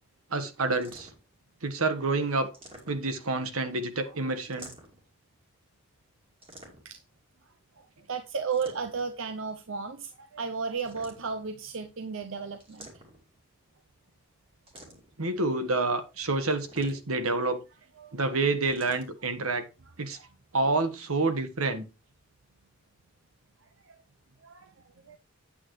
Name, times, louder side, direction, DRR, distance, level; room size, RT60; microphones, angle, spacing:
voice 1, 0.3-1.1 1.6-2.5 2.9-4.7 15.2-17.6 18.1-19.6 20.0-20.2 20.5-21.8, right 3 dB, 90° right, 9 dB, 1.4 m, -28 dB
sound 1, 0.8-1.3 2.4-3.3 4.4-5.1 6.4-7.1 8.4-9.1 10.7-11.5 12.6-13.4 14.7-15.2 16.5-17.3 18.6-19.1, right 1 dB, 25° right, 2.6 m, -50 dB
voice 2, 7.8-12.9 18.0-18.2 20.1-20.3 23.8-24.0 24.4-24.7 25.0-25.2, right 5 dB, 70° right, 7 dB, 0.7 m, -34 dB
9.0 x 8.7 x 3.2 m, 0.29 s
head